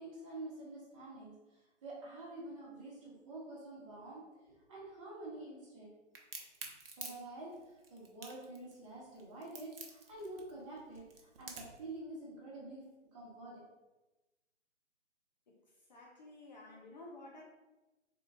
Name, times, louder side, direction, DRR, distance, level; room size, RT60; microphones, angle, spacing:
voice 1, 0.0-1.3 1.8-5.9 7.0-7.5 7.9-12.9 13.1-13.6, right 2 dB, 25° right, -5 dB, 1.0 m, -48 dB
Crack, 6.1-11.8, right 4 dB, 50° right, 0.7 m, -48 dB
voice 2, 15.9-17.4, left 2 dB, 40° left, -2 dB, 0.5 m, -52 dB
3.7 x 2.4 x 3.6 m, 1.1 s
figure-of-eight pair, 145°, 37 cm